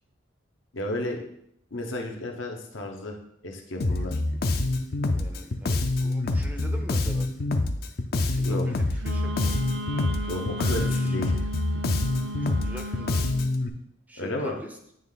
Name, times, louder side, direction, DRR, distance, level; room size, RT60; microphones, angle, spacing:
voice 1, 0.7-1.2 1.7-3.2 3.4-4.2 8.4-8.6 10.3-11.3 14.2-14.5, left 1 dB, 80° left, 2 dB, 1.0 m, -32 dB
Bass guitar, 3.8-13.7, left 2 dB, 50° left, 0.5 m, -26 dB
voice 2, 5.1-7.3 8.3-9.6 10.9-11.2 12.4-13.3 14.1-14.8, equal, 10° right, 4 dB, 0.4 m, -42 dB
Wind instrument woodwind instrument, 9.0-13.4, equal, 60° right, 0.5 m, -35 dB
9.2 x 3.2 x 3.9 m, 0.72 s
head